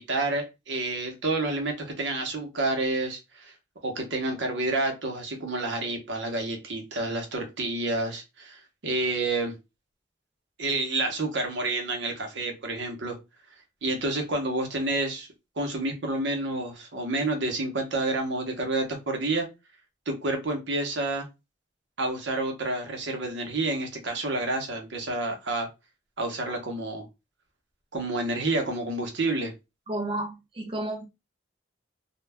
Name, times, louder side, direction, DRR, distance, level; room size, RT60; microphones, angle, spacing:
voice 1, 0.0-3.5 3.8-9.5 10.6-13.2 13.8-15.3 15.6-19.5 20.1-21.3 22.0-25.7 26.2-27.1 27.9-29.5, right 2 dB, 70° right, 4 dB, 0.7 m, -29 dB
voice 2, 29.9-31.1, right 1 dB, 30° right, 1 dB, 0.4 m, -32 dB
2.2 x 2.1 x 3.3 m, 0.25 s
head